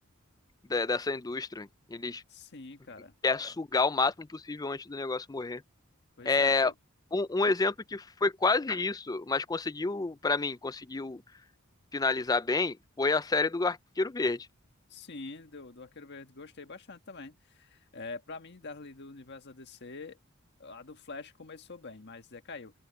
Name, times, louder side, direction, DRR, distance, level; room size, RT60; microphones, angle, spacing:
voice 1, 0.7-2.2 3.2-5.6 6.3-6.7 7.1-11.2 11.9-14.5, left 3 dB, 20° left, 0.5 m, -29 dB
voice 2, 2.3-3.1 6.2-6.7 14.9-20.2 20.6-22.7, left 3 dB, 55° left, 1.6 m, -45 dB
open air
head